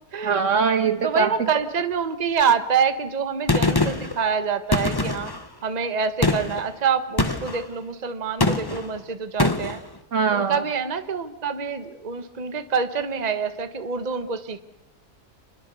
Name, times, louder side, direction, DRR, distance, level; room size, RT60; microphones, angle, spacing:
voice 1, 0.2-1.5 10.1-10.6, right 5 dB, 55° right, 10 dB, 1.5 m, -22 dB
voice 2, 1.0-5.3 5.6-9.8 10.3-14.6, right 6 dB, 30° right, 9 dB, 1.2 m, -26 dB
Gunshot gunfire, 3.5-4.2 4.7-5.4 6.2-6.6 7.2-7.6 8.4-8.9 9.4-9.8, left 2 dB, 15° left, 1.3 m, -23 dB
28.0 x 21.5 x 7.0 m, 0.88 s
omnidirectional pair, 1.6 m